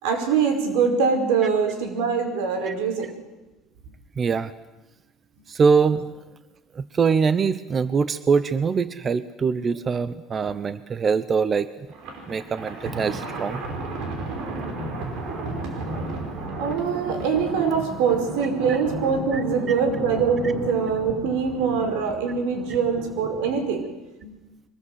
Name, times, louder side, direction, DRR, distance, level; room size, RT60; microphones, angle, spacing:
voice 1, 0.0-3.1 16.6-23.8 24.2-24.3, right 6 dB, 90° right, 6 dB, 5.1 m, -23 dB
voice 2, 4.2-4.5 5.5-6.0 6.7-11.7 12.3-13.6 19.3-19.4 19.7-19.8, right 5 dB, 25° right, 15 dB, 0.8 m, -23 dB
Thunder, 11.9-23.7, right 2 dB, 60° right, 5.6 m, -34 dB
23.5 x 20.5 x 8.1 m, 1.0 s
cardioid pair, 155°, 0 cm